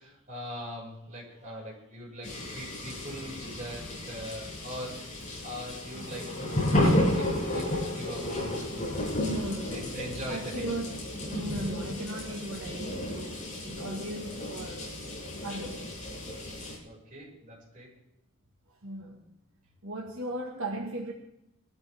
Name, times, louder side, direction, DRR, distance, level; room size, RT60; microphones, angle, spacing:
voice 1, 0.0-5.0 5.4-6.7 7.1-7.2 7.5-7.7 7.9-9.2 9.7-10.7 16.8-17.9, equal, 35° right, -4 dB, 6.0 m, -41 dB
sound 1, 2.2-16.8, left 1 dB, 35° left, 6.1 m, -32 dB
voice 2, 9.2-9.8 10.3-11.0 11.3-14.9 15.4-15.9 18.7-19.3 19.8-21.1, right 1 dB, 60° right, -1 dB, 1.8 m, -37 dB
22.5 x 13.0 x 3.6 m, 0.85 s
head